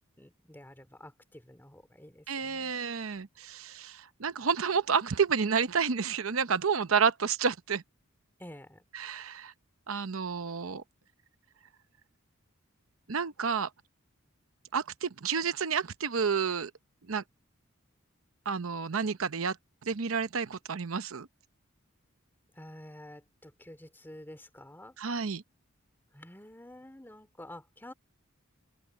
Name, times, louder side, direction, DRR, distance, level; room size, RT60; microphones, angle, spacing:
voice 1, 0.2-2.7 8.4-8.8 22.5-25.0 26.1-27.9, left 1 dB, 10° left, 3.0 m, -49 dB
voice 2, 2.3-7.8 8.9-9.5 9.9-10.8 13.1-13.7 14.7-16.7 17.1-17.2 18.5-19.6 19.8-21.3 25.0-25.4, right 6 dB, 80° right, 0.8 m, -30 dB
open air
head